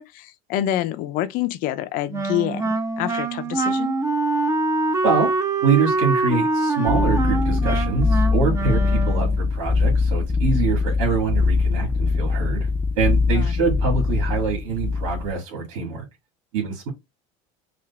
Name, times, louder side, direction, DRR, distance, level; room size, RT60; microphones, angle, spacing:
voice 1, 0.0-4.0 13.3-13.7, left 13 dB, 60° left, 0.6 m, -27 dB
Wind instrument woodwind instrument, 2.1-9.4, right 3 dB, 20° right, 0.7 m, -24 dB
voice 2, 5.6-12.7 12.9-16.1 16.5-16.9, right 5 dB, 80° right, 2.0 m, -24 dB
sound 1, 6.9-15.3, left 4 dB, 10° left, 0.6 m, -22 dB
5.0 x 2.5 x 2.4 m
supercardioid pair, 120°, 16 cm